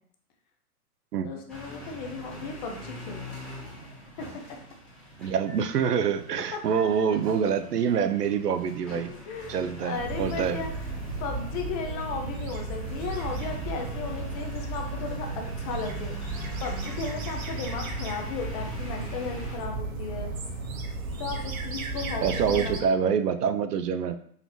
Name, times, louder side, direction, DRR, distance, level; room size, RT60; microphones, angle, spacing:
voice 1, 1.2-3.4 3.8-3.9 4.2-4.4 6.5-6.6 9.1-10.7 11.2-16.2 16.6-20.3 21.2-22.8 23.0-23.1, left 4 dB, 25° left, 3 dB, 0.5 m, -35 dB
sound 1, 1.5-19.6, equal, ahead, 1.1 m, -43 dB
voice 2, 5.2-9.1 9.5-10.6 22.2-24.2, right 7 dB, 85° right, 10 dB, 0.6 m, -26 dB
sound 2, 9.9-22.8, right 3 dB, 60° right, 1.0 m, -34 dB
4.1 x 3.9 x 3.0 m, 0.62 s
hypercardioid pair, 120°, 46 cm